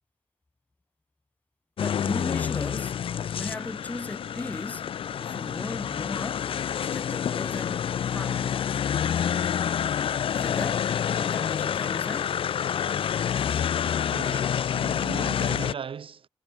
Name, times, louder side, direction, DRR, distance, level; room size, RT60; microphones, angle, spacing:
sound 1, 1.8-15.7, left 8 dB, 60° left, 0.4 m, -28 dB
voice 1, 1.8-3.0 3.4-4.9 5.2-6.5 6.8-8.9 10.3-12.3, left 2 dB, 15° left, 0.7 m, -37 dB
voice 2, 14.1-16.3, right 7 dB, 60° right, 2.3 m, -38 dB
wide cardioid pair, 165°, 11 cm